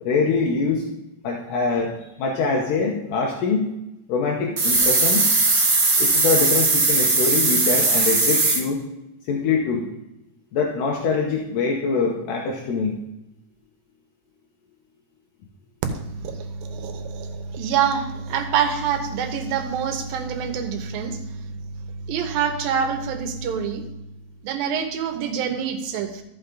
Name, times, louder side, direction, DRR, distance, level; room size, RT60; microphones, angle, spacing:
voice 1, 0.0-0.8 1.2-1.9 2.2-3.7 4.1-5.3 6.0-8.8 9.2-9.9 10.5-13.0, left 4 dB, 80° left, 0 dB, 2.5 m, -24 dB
sound 1, 4.6-8.6, right 3 dB, 35° right, 1.4 m, -19 dB
voice 2, 16.0-21.3 22.1-23.8 24.4-26.2, right 7 dB, 85° right, 6 dB, 2.7 m, -26 dB
13.5 x 5.8 x 3.8 m, 0.90 s
omnidirectional pair, 4.0 m